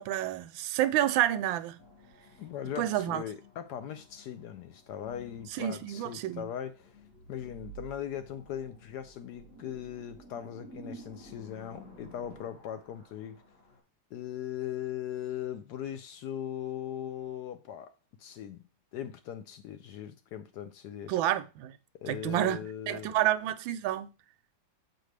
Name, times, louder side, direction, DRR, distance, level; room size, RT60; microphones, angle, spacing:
voice 1, 0.0-1.8 2.8-3.2 5.6-6.4 21.1-21.7 22.1-22.6 22.9-24.1, right 13 dB, 85° right, 1.3 m, -29 dB
sound 1, 1.8-13.8, right 1 dB, 45° left, 2.3 m, -52 dB
voice 2, 2.4-13.4 14.1-17.9 18.2-18.6 18.9-21.2 22.0-23.2, left 10 dB, 75° left, 1.0 m, -39 dB
6.6 x 4.6 x 3.2 m
omnidirectional pair, 2.1 m